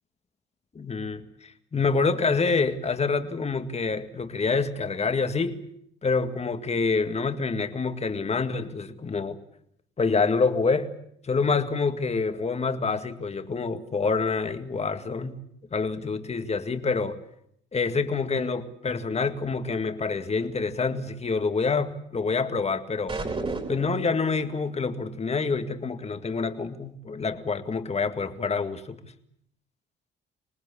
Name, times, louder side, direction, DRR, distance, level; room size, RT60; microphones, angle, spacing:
voice 1, 0.7-5.6 6.0-9.4 10.0-10.9 11.2-15.4 15.7-17.2 17.7-23.2 23.7-29.1, left 4 dB, 30° left, 8 dB, 2.1 m, -27 dB
sound 1, 23.1-24.1, right 3 dB, 30° right, 4.3 m, -31 dB
26.5 x 19.0 x 8.6 m, 0.72 s
cardioid pair, 90°, 20 cm